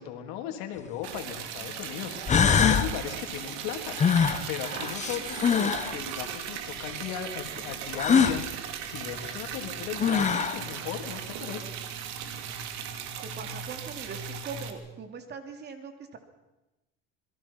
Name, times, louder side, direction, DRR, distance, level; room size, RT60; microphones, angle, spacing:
voice 1, 0.0-4.1 4.5-8.4 8.9-11.7, left 9 dB, 80° left, 4 dB, 3.7 m, -37 dB
sound 1, 0.8-0.9 1.8-1.9 2.3-2.9 4.0-5.9 8.0-8.4 9.6-9.7 10.0-10.6, left 6 dB, 25° left, 1.4 m, -23 dB
Liquid, 1.0-14.7, right 8 dB, 65° right, 2.8 m, -37 dB
voice 2, 13.2-16.2, right 5 dB, 35° right, 6 dB, 3.0 m, -41 dB
27.0 x 21.5 x 5.9 m, 1.0 s
cardioid pair, 145°, 30 cm